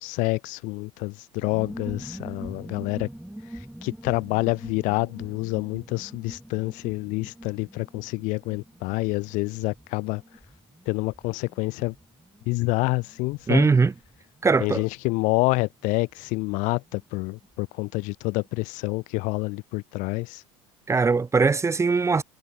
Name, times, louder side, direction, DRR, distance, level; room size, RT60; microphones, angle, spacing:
voice 1, 0.0-3.1 3.8-10.2 10.9-11.9 12.5-13.7 14.6-20.4, left 24 dB, 65° left, 2.1 m, -27 dB
sound 1, 1.3-17.6 17.9-18.0 18.2-18.6, right 1 dB, 5° right, 5.6 m, -44 dB
voice 2, 13.5-13.9 14.4-14.8 20.9-22.2, right 4 dB, 20° right, 1.6 m, -20 dB
hypercardioid pair, 90°, 14 cm